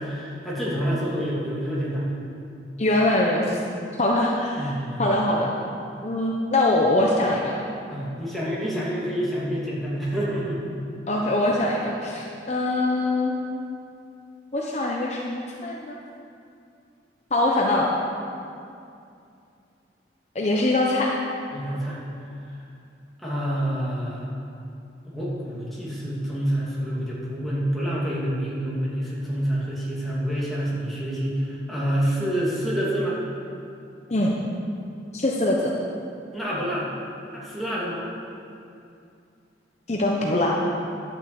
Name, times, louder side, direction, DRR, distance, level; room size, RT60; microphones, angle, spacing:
voice 1, 0.0-2.1 4.6-5.0 7.9-10.6 21.5-22.0 23.2-24.3 25.0-33.2 36.3-36.9 37.3-38.0, equal, ahead, -8 dB, 2.6 m, -27 dB
voice 2, 2.8-3.6 4.0-4.7 5.0-5.5 6.0-7.7 11.1-13.4 14.5-16.0 17.3-17.9 20.3-21.2 34.1-34.3 35.1-35.7 39.9-40.7, left 1 dB, 40° left, -2 dB, 1.0 m, -23 dB
11.5 x 7.1 x 7.8 m, 2.5 s
head